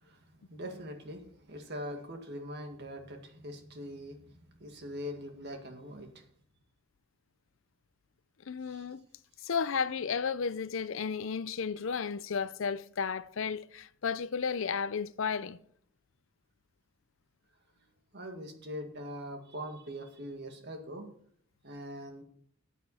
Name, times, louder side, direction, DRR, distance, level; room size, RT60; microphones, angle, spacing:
voice 1, 0.0-6.2 8.7-8.8 18.1-21.1 21.6-22.2, equal, 50° right, 2.0 m, -42 dB
voice 2, 8.5-9.0 9.4-15.6, left 6 dB, 60° left, 0.5 m, -33 dB
13.5 x 8.2 x 4.2 m
head